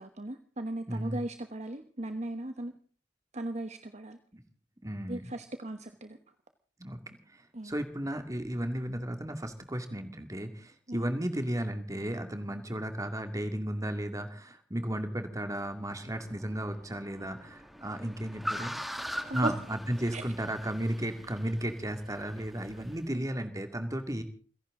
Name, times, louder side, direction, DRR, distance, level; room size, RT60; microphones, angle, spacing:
voice 1, 0.0-2.7 3.3-4.2 5.1-6.2 7.5-7.7 10.9-11.1 19.3-19.5 20.1-20.2 23.1-23.3, right 1 dB, 40° right, 8 dB, 1.1 m, -37 dB
voice 2, 4.8-5.2 6.8-7.0 7.6-18.7 19.3-24.2, right 1 dB, 20° right, 7 dB, 2.3 m, -34 dB
Car, 15.6-23.0, equal, ahead, 1.7 m, -42 dB
29.5 x 11.0 x 3.8 m, 0.41 s
head